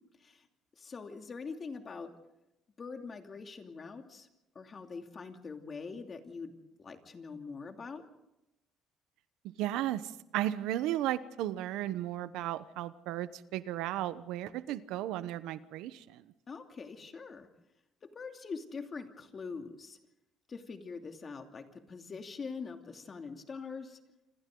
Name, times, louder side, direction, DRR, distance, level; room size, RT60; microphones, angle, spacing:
voice 1, 0.8-2.1 2.8-4.3 4.5-6.5 6.8-8.0 16.5-17.5 18.0-20.0 20.5-24.0, left 4 dB, 35° left, 5 dB, 2.7 m, -43 dB
voice 2, 9.6-16.2, right 13 dB, 85° right, 14 dB, 1.0 m, -35 dB
28.0 x 26.5 x 3.9 m, 0.93 s
cardioid pair, 115°, 0 cm